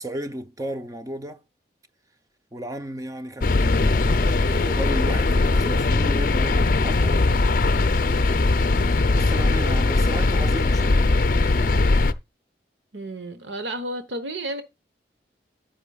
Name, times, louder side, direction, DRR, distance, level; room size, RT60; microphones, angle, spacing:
voice 1, 0.0-1.4 2.5-7.3 9.1-11.1, right 1 dB, 20° right, 0.6 m, -34 dB
sound 1, 3.4-12.1, left 3 dB, 50° left, 0.5 m, -20 dB
voice 2, 12.9-14.6, right 1 dB, 85° right, 1.1 m, -32 dB
10.0 x 8.3 x 2.3 m
head